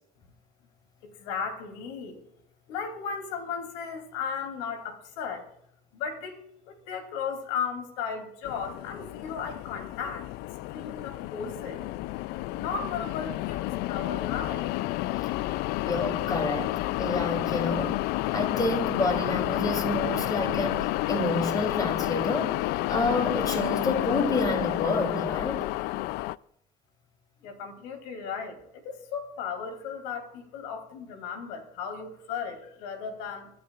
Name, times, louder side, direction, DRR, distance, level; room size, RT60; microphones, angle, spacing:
voice 1, 1.0-2.2 2.7-5.5 5.9-10.3 10.7-11.8 12.5-14.7 27.4-33.5, left 6 dB, 85° left, 3.1 m, -35 dB
sound 1, 8.4-26.4, left 18 dB, 65° left, 0.4 m, -30 dB
voice 2, 15.8-18.0 18.3-22.6 22.9-25.7, left 2 dB, 20° left, 3.1 m, -29 dB
25.0 x 11.0 x 2.4 m
cardioid pair, 120°, 18 cm